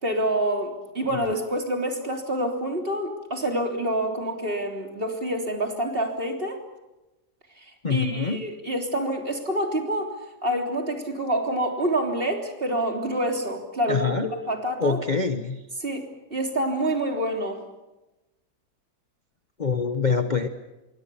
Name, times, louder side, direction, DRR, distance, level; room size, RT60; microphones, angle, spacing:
voice 1, 0.0-6.6 7.9-10.1 10.4-15.0 15.8-16.0 16.3-17.6, right 1 dB, 35° right, 3 dB, 3.7 m, -27 dB
voice 2, 7.8-8.4 13.9-14.3 14.8-15.6 19.6-20.5, left 5 dB, 30° left, 7 dB, 1.1 m, -25 dB
27.0 x 23.0 x 7.0 m, 1.0 s
omnidirectional pair, 1.7 m